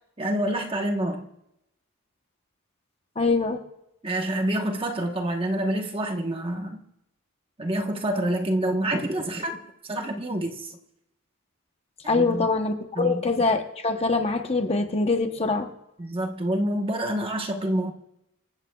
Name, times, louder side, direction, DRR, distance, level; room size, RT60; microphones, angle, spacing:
voice 1, 0.2-1.3 4.0-6.8 7.6-10.7 12.0-12.5 12.9-13.2 16.0-17.9, right 1 dB, 25° right, 3 dB, 1.1 m, -27 dB
voice 2, 3.2-3.6 12.1-15.7, left 3 dB, 25° left, 5 dB, 0.9 m, -24 dB
25.5 x 15.5 x 2.3 m, 0.87 s
head